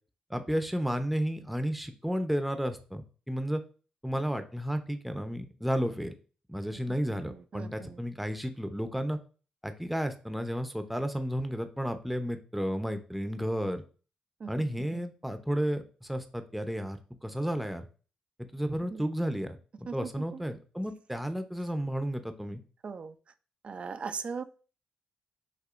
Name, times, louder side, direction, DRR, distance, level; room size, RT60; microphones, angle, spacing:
voice 1, 0.3-3.6 4.0-6.1 6.5-9.2 9.6-13.8 14.5-17.9 18.5-22.6, equal, ahead, 7 dB, 0.7 m, -32 dB
voice 2, 6.7-8.0 14.4-15.0 18.9-19.0 19.9-20.4 22.8-23.2 23.6-24.4, right 5 dB, 50° right, 11 dB, 0.5 m, -40 dB
6.6 x 2.7 x 2.5 m, 0.37 s
cardioid pair, 65°, 3 cm